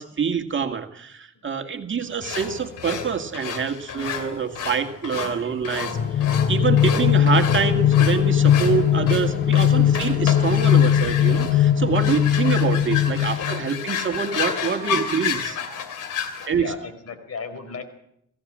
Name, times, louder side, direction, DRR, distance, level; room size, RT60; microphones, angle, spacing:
voice 1, 0.0-15.6 16.5-16.7, right 6 dB, 40° right, 5 dB, 2.1 m, -26 dB
sound 1, 2.2-16.5, left 7 dB, 85° left, 3.1 m, -31 dB
sound 2, 5.9-13.8, left 9 dB, 35° left, 0.8 m, -19 dB
voice 2, 16.0-17.8, left 5 dB, 55° left, 10 dB, 4.2 m, -36 dB
23.0 x 16.0 x 7.6 m, 0.75 s
cardioid pair, 90°, 30 cm